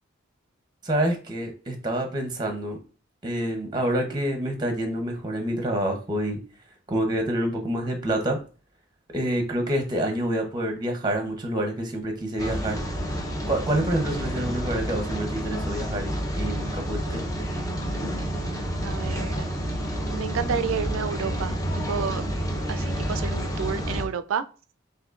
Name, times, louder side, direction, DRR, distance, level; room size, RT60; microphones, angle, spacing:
voice 1, 0.8-2.8 3.2-6.4 6.9-8.4 9.1-12.8 13.5-17.3 22.1-22.3, right 1 dB, 20° right, 4 dB, 0.7 m, -27 dB
Rain, 12.4-24.1, equal, 15° left, 0.7 m, -29 dB
voice 2, 18.8-19.5 20.1-21.6 21.9-22.2 22.7-24.4, right 6 dB, 90° right, 13 dB, 0.4 m, -30 dB
6.3 x 2.7 x 2.4 m, 0.37 s
head